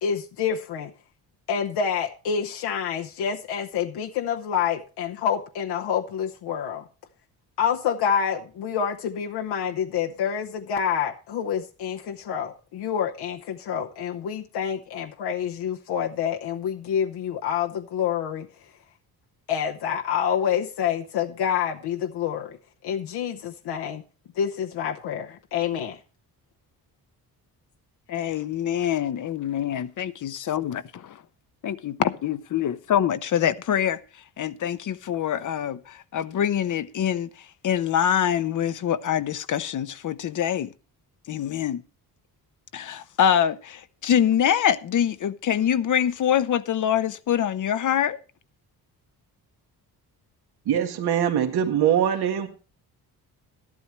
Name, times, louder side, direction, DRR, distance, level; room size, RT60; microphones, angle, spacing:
voice 1, 0.0-0.9 1.5-6.8 7.6-18.5 19.5-22.6 22.8-24.0 24.4-26.0, left 8 dB, 85° left, 1.0 m, -27 dB
voice 2, 28.1-31.2 31.6-34.0 34.4-37.3 37.6-40.7 41.3-41.8 42.7-48.2, left 9 dB, 50° left, 0.7 m, -25 dB
voice 3, 50.6-52.5, right 9 dB, 75° right, 1.7 m, -22 dB
12.5 x 12.0 x 3.1 m
cardioid pair, 130°, 38 cm